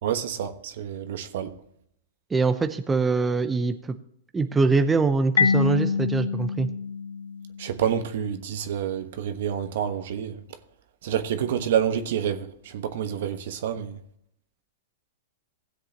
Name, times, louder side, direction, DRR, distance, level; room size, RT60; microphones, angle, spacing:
voice 1, 0.0-1.5 7.6-10.4 11.0-14.0, right 9 dB, 65° right, 1.2 m, -28 dB
voice 2, 2.3-4.0 4.3-6.7, right 4 dB, 15° right, 0.7 m, -23 dB
Marimba xylophone, 5.4-8.0, left 5 dB, 80° left, 0.4 m, -26 dB
17.0 x 7.7 x 2.9 m
hypercardioid pair, 115°, 0 cm